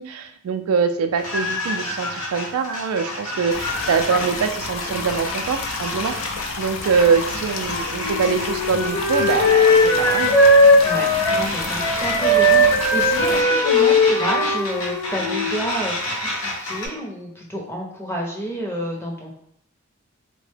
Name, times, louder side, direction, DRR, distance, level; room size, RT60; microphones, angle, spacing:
voice 1, 0.0-6.2 6.6-10.4, right 5 dB, 85° right, 9 dB, 0.3 m, -23 dB
sound 1, 1.2-16.9, left 1 dB, 85° left, 0.8 m, -29 dB
sound 2, 3.5-13.4, left 4 dB, 65° left, 0.4 m, -31 dB
Wind instrument woodwind instrument, 8.0-15.7, left 1 dB, 35° left, 0.9 m, -18 dB
voice 2, 10.8-19.3, equal, 10° left, -1 dB, 0.6 m, -30 dB
3.6 x 2.1 x 3.2 m, 0.71 s
head